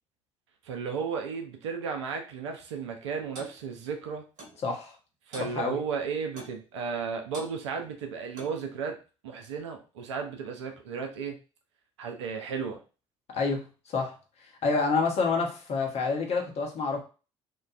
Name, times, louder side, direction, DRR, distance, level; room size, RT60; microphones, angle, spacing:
voice 1, 0.6-4.2 5.3-9.0 9.2-11.4 12.0-12.8, right 5 dB, 75° right, 4 dB, 0.5 m, -34 dB
Clock, 3.4-3.6 4.4-4.6 5.3-5.6 6.4-6.6 7.3-7.5 8.4-8.6, right 1 dB, 55° right, 0.9 m, -44 dB
voice 2, 4.6-4.9 5.4-5.8 13.3-14.2 14.6-17.0, left 4 dB, 45° left, 2 dB, 0.8 m, -28 dB
3.0 x 2.1 x 2.4 m, 0.33 s
figure-of-eight pair, 55°, 15 cm